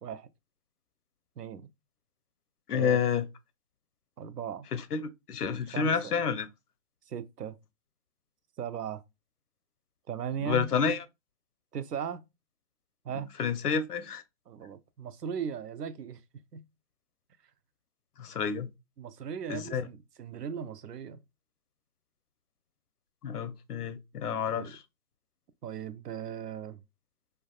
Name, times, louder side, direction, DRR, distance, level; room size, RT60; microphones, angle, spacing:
voice 1, 1.4-1.7 2.7-3.0 4.2-4.7 5.7-6.1 7.1-7.6 8.6-9.0 10.1-10.7 11.7-12.2 13.0-13.3 14.5-16.2 16.5-16.7 19.0-21.2 24.5-24.7 25.6-26.8, right 7 dB, 90° right, 0.6 m, -37 dB
voice 2, 2.7-3.2 4.7-5.0 5.3-6.5 10.4-11.0 13.4-14.2 18.2-18.7 19.5-19.8 23.2-24.8, left 6 dB, 75° left, 0.6 m, -29 dB
3.4 x 2.1 x 2.2 m
figure-of-eight pair, 170°, 46 cm